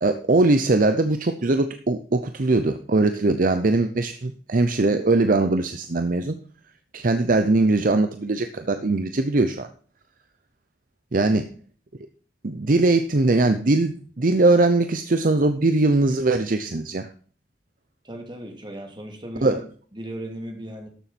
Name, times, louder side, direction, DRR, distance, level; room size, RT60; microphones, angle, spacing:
voice 1, 0.0-6.4 6.9-9.7 11.1-11.4 12.4-17.1 19.4-19.6, right 2 dB, 50° right, 8 dB, 0.7 m, -21 dB
voice 2, 18.0-19.5 19.9-20.9, right 1 dB, 25° right, 3 dB, 2.7 m, -36 dB
12.5 x 7.2 x 4.2 m, 0.43 s
head